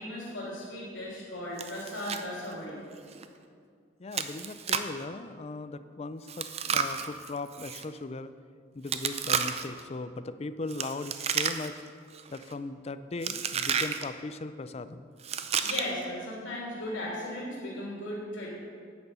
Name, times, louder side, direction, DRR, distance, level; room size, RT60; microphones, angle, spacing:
voice 1, 0.0-2.8 15.6-18.5, left 1 dB, 90° left, -5 dB, 3.3 m, -36 dB
Chewing mastication, 1.6-2.2 2.5-2.6 3.1-3.3 4.1-5.0 6.3-7.8 8.9-9.8 10.7-11.9 12.1-12.5 13.2-14.0 15.2-16.0, right 7 dB, 35° right, 0.5 m, -31 dB
voice 2, 4.0-8.3 8.7-11.8 12.3-15.1, left 3 dB, 35° left, 13 dB, 0.4 m, -38 dB
9.6 x 9.3 x 6.8 m, 2.2 s
head